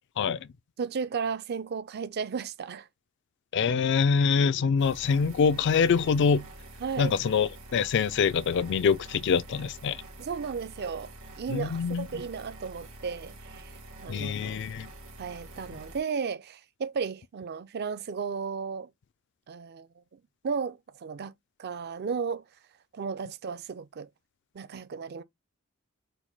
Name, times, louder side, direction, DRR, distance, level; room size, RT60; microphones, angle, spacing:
voice 1, 0.8-2.9 6.8-7.2 10.2-13.7 14.0-14.6 15.2-18.9 19.5-19.9 20.1-21.3 21.6-22.4 22.9-24.1 24.5-25.2, right 5 dB, 50° right, 0.4 m, -34 dB
voice 2, 3.5-6.4 7.0-10.0 11.5-12.1 14.1-14.9, left 6 dB, 55° left, 0.3 m, -25 dB
sound 1, 4.8-16.0, right 1 dB, 80° right, 1.6 m, -47 dB
4.5 x 2.2 x 3.9 m
head